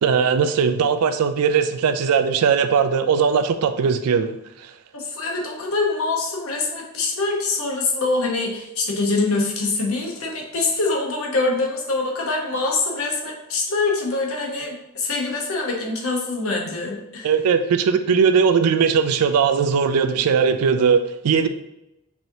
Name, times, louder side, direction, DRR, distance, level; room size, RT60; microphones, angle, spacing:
voice 1, 0.0-4.4 17.2-21.5, right 6 dB, 85° right, 10 dB, 0.3 m, -19 dB
voice 2, 4.9-17.3, left 3 dB, 70° left, 0 dB, 0.9 m, -24 dB
4.7 x 2.9 x 2.6 m, 0.91 s
head